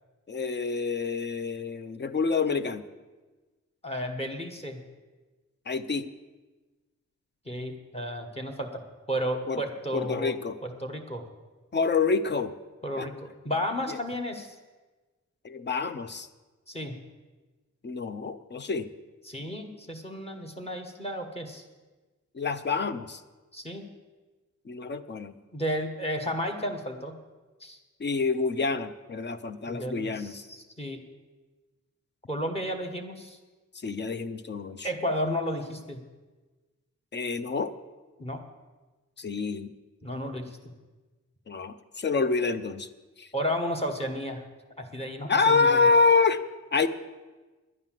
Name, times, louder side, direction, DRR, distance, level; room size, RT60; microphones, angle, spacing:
voice 1, 0.3-2.8 5.7-6.1 9.5-9.6 9.9-10.6 11.7-12.6 13.0-13.1 13.9-14.0 15.4-16.3 17.8-18.9 22.3-23.2 24.7-25.4 28.0-30.4 33.7-34.9 37.1-37.7 39.2-39.7 41.5-42.9 43.2-43.3 45.3-46.4 46.7-46.9, left 4 dB, 40° left, 12 dB, 0.6 m, -27 dB
voice 2, 3.8-4.8 7.4-8.8 9.1-10.3 10.6-11.3 12.8-14.5 16.7-17.0 19.2-21.6 23.5-23.9 25.5-27.2 27.6-27.8 29.7-31.0 32.3-33.4 34.8-36.0 38.2-38.4 40.0-40.7 43.3-44.4 44.8-45.9, equal, 20° left, 4 dB, 1.3 m, -33 dB
11.0 x 9.3 x 7.5 m, 1.2 s
wide cardioid pair, 165°, 29 cm